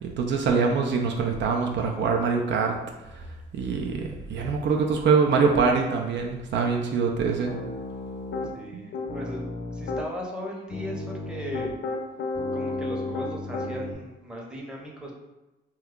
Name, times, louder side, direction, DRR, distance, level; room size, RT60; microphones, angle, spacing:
voice 1, 0.0-2.8 3.5-7.5 8.7-8.8, right 5 dB, 65° right, 2 dB, 0.5 m, -24 dB
Piano, 7.5-8.5 8.9-10.1 10.7-13.9, left 3 dB, 60° left, 0.6 m, -32 dB
voice 2, 8.4-9.4 9.7-11.7 12.5-15.1, equal, 5° right, -2 dB, 0.7 m, -37 dB
2.8 x 2.3 x 3.6 m, 1.0 s
cardioid pair, 90°, 20 cm